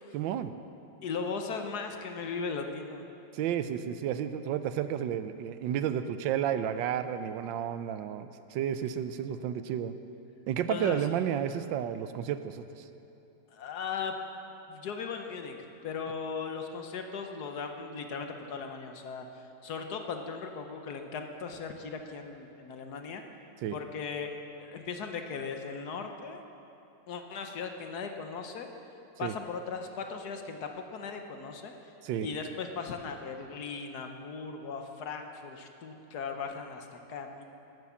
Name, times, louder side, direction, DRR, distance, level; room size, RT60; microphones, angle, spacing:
voice 1, 0.1-0.5 3.3-9.9 10.5-12.8 23.6-23.8 29.2-29.3 32.0-32.3, right 9 dB, 85° right, 11 dB, 1.4 m, -32 dB
voice 2, 1.0-3.1 10.7-11.0 13.5-14.1 14.7-15.5 15.8-23.2 23.7-26.4 27.1-28.7 29.2-31.7 32.2-37.4, left 5 dB, 65° left, 5 dB, 1.4 m, -38 dB
13.0 x 9.3 x 7.1 m, 2.8 s
omnidirectional pair, 2.0 m